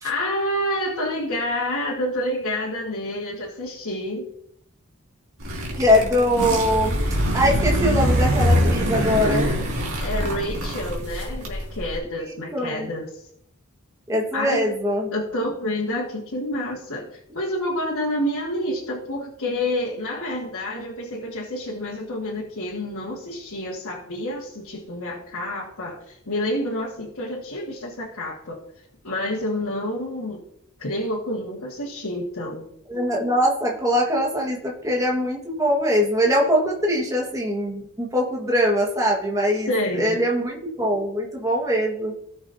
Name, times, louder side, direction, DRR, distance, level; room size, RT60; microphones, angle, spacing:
voice 1, 0.0-4.3 10.0-13.2 14.3-14.7 15.1-28.6 29.0-30.4 30.8-32.7 39.7-40.2, left 1 dB, 90° left, -5 dB, 1.7 m, -28 dB
sound 1, 5.4-11.9, equal, 80° right, 2.2 m, -23 dB
voice 2, 5.8-7.0 7.3-9.6 12.5-12.9 14.1-15.1 32.9-39.7 39.9-42.1, equal, 15° right, -2 dB, 1.5 m, -22 dB
17.0 x 6.1 x 2.7 m, 0.75 s
head